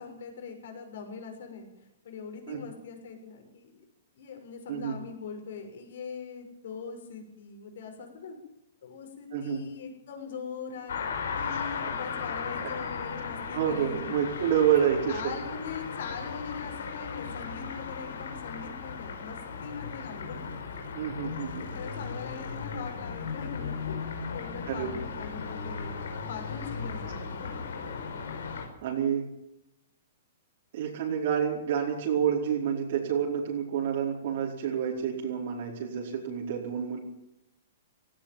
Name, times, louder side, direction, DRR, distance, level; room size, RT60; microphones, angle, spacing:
voice 1, 0.0-1.7 2.0-3.7 4.1-8.4 8.8-11.0 11.4-14.2 14.7-20.4 21.2-21.3 21.6-27.5, left 6 dB, 65° left, 4 dB, 6.7 m, -41 dB
voice 2, 9.3-9.6 11.5-11.6 13.5-15.3 20.9-21.7 24.7-24.9 28.8-29.3 30.7-37.0, right 8 dB, 55° right, -3 dB, 4.8 m, -28 dB
sound 1, 10.9-28.7, left 5 dB, 90° left, 5.1 m, -36 dB
17.5 x 16.5 x 9.0 m, 0.85 s
hypercardioid pair, 165°, 0 cm